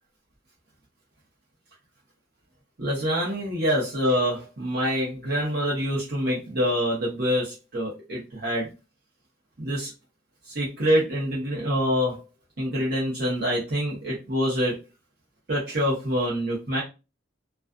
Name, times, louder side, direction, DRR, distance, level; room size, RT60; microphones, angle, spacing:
voice 1, 2.8-8.7 9.6-9.9 10.5-12.2 12.6-14.8 15.5-16.8, equal, 55° right, -6 dB, 0.8 m, -26 dB
2.4 x 2.3 x 2.3 m, 0.29 s
head